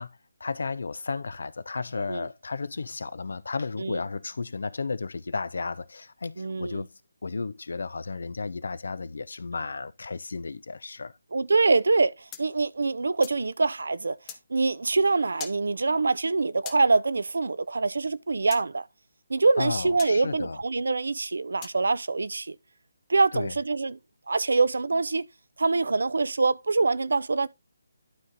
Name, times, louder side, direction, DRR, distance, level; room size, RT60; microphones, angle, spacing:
voice 1, 0.0-6.9 7.2-11.1 19.6-20.6 23.3-23.6, left 4 dB, 65° left, 0.7 m, -33 dB
voice 2, 6.4-6.9 11.3-14.2 14.5-18.9 19.3-22.6 23.1-24.0 24.3-25.3 25.6-27.5, right 3 dB, 70° right, 0.7 m, -24 dB
sound 1, 12.3-13.4 14.3-14.4 15.4-15.6 16.7-16.8 18.5-18.6 20.0-20.1 21.6-21.8, left 10 dB, 20° left, 0.9 m, -41 dB
12.0 x 4.0 x 3.7 m
figure-of-eight pair, 155°, 0 cm